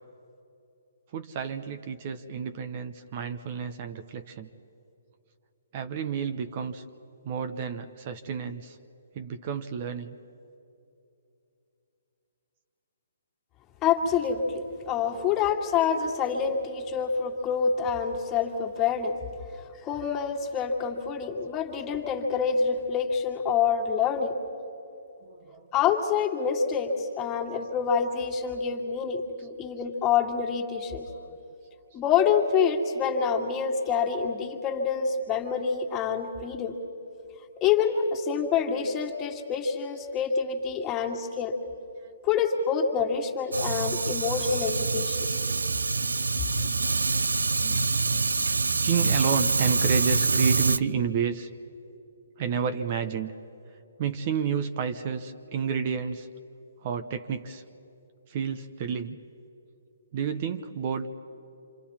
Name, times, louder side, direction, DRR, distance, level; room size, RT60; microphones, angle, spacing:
voice 1, 1.1-4.5 5.7-6.8 7.2-8.8 9.1-10.2 15.1-15.3 25.2-25.7 31.1-31.2 46.6-51.5 52.4-53.3 54.0-56.3 56.8-57.6 58.3-59.2 60.1-61.1, right 7 dB, 40° right, 8 dB, 1.0 m, -31 dB
voice 2, 13.8-19.1 19.8-24.4 25.7-31.1 31.9-36.8 37.6-41.5 42.2-45.2, left 6 dB, 20° left, 0 dB, 2.2 m, -27 dB
Fire, 43.5-50.8, right 3 dB, 85° right, 0.6 m, -25 dB
27.5 x 26.5 x 4.4 m, 2.8 s
hypercardioid pair, 140°, 0 cm